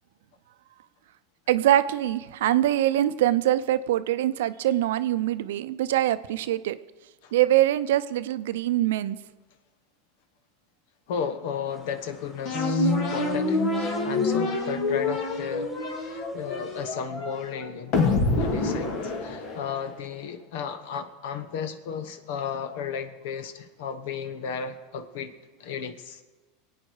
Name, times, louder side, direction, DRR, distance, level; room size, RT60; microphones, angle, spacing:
voice 1, 1.5-6.8 7.3-9.2, right 13 dB, 80° right, 13 dB, 0.6 m, -23 dB
voice 2, 11.1-15.7 16.1-18.0 18.4-25.3 25.6-26.2, left 7 dB, 70° left, 11 dB, 1.2 m, -34 dB
sound 1, 11.7-16.9, equal, 5° left, 2.5 m, -44 dB
sound 2, 12.4-19.9, left 3 dB, 55° left, 2.2 m, -26 dB
23.0 x 9.0 x 4.7 m, 1.3 s
hypercardioid pair, 105°, 0 cm